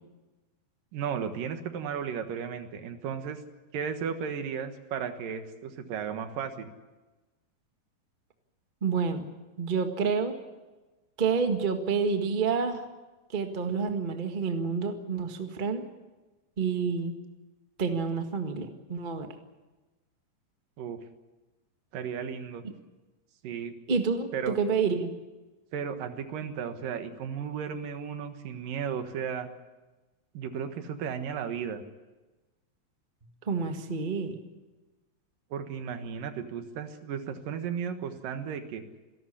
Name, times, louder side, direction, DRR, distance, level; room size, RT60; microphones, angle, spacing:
voice 1, 0.9-3.4 3.7-6.7 20.8-21.0 21.9-22.6 23.4-23.7 24.3-24.6 25.7-29.5 30.3-31.8 35.5-38.8, right 7 dB, 70° right, 8 dB, 3.1 m, -34 dB
voice 2, 8.8-9.3 9.6-10.3 11.2-12.8 13.3-15.8 16.6-17.2 17.8-19.3 23.9-25.1 33.5-34.4, right 5 dB, 40° right, 5 dB, 0.6 m, -28 dB
27.0 x 12.0 x 9.9 m, 1.2 s
omnidirectional pair, 4.1 m